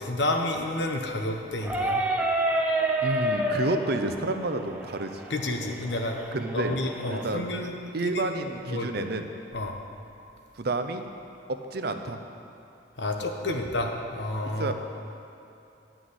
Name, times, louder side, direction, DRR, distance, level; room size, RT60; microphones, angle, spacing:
voice 1, 0.0-2.0 5.3-6.2 6.5-7.7 8.0-9.0 9.5-9.8 13.0-14.7, left 1 dB, 70° left, 3 dB, 1.1 m, -30 dB
sound 1, 1.6-7.2, right 1 dB, 10° right, 0.8 m, -29 dB
voice 2, 3.0-5.2 6.3-6.8 7.1-7.4 7.9-9.3 10.5-11.0 11.5-12.2 14.6-14.7, right 2 dB, 60° right, 7 dB, 0.7 m, -30 dB
11.0 x 6.2 x 8.1 m, 2.8 s
head